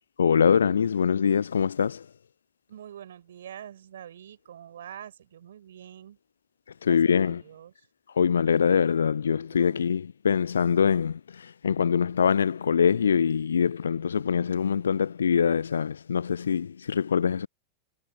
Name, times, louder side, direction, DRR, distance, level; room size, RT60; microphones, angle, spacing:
voice 1, 0.2-2.0 6.8-7.4 8.1-17.5, left 7 dB, 70° left, 0.4 m, -24 dB
voice 2, 2.7-6.2 6.8-7.9 9.3-9.8, right 10 dB, 65° right, 7.4 m, -45 dB
figure-of-eight pair, 90°, 0 cm